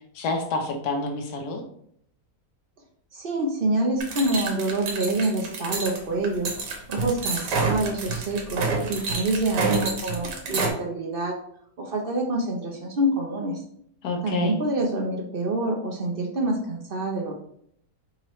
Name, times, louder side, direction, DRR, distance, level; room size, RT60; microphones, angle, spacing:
voice 1, 0.1-1.6 14.0-14.6, left 3 dB, 70° left, 3 dB, 1.3 m, -28 dB
voice 2, 3.1-6.5 6.9-11.4 11.8-13.6 14.2-17.3, right 2 dB, 55° right, 1 dB, 0.6 m, -26 dB
sound 1, 4.0-10.7, right 3 dB, 80° right, 1.5 m, -28 dB
4.5 x 3.7 x 3.1 m, 0.67 s
omnidirectional pair, 1.8 m